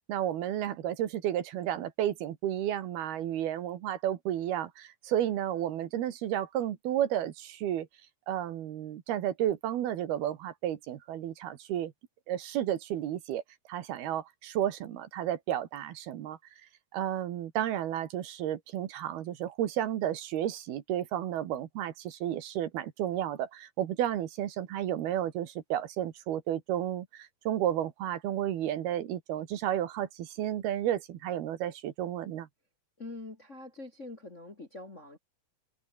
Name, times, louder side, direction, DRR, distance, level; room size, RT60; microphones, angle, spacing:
voice 1, 0.1-7.9 8.3-11.9 12.3-13.4 13.7-16.4 16.9-32.5, right 11 dB, 70° right, 3.4 m, -32 dB
voice 2, 33.0-35.2, left 2 dB, 25° left, 1.7 m, -44 dB
omnidirectional pair, 4.7 m